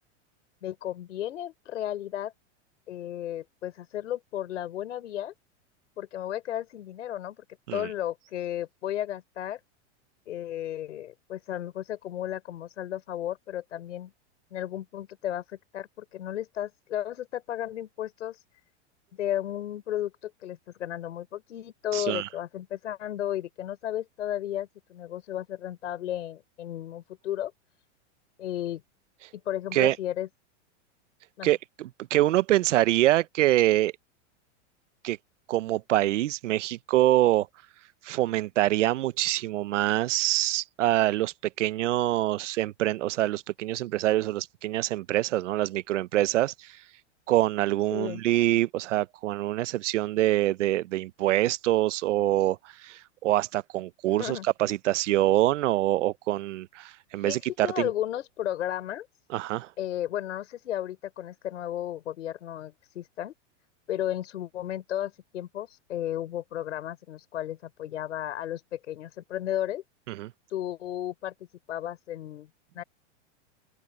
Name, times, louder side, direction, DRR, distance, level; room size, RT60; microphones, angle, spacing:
voice 1, 0.6-2.3 2.9-5.3 6.0-7.4 7.7-9.6 10.3-14.1 14.5-18.4 19.1-27.5 28.4-28.8 29.3-30.3 31.4-31.5 47.9-48.2 54.2-54.5 57.2-59.1 59.8-63.3 63.9-69.8 70.5-71.3 71.7-72.5 72.7-72.8, left 12 dB, 90° left, 6.0 m, -34 dB
voice 2, 21.9-22.3 29.7-30.0 31.4-33.9 35.0-35.2 35.5-37.5 38.0-46.7 47.3-57.9 59.3-59.7 70.1-70.3, right 15 dB, 80° right, 0.9 m, -25 dB
open air
supercardioid pair, 150°, 36 cm